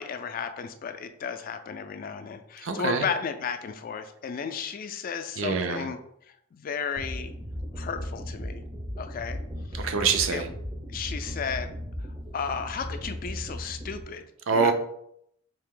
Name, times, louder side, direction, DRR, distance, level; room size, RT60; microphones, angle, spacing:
voice 1, 0.0-6.0 6.3-7.3 7.8-8.6 9.0-9.4 9.7-9.8 10.3-10.4 10.9-11.7 12.3-14.7, left 6 dB, 45° left, 9 dB, 0.3 m, -34 dB
voice 2, 2.6-3.1 5.4-5.9 9.7-10.5 14.5-14.7, right 5 dB, 80° right, 7 dB, 0.5 m, -25 dB
sound 1, 7.0-14.0, equal, 15° right, 0.5 m, -36 dB
3.4 x 2.8 x 3.7 m, 0.73 s
head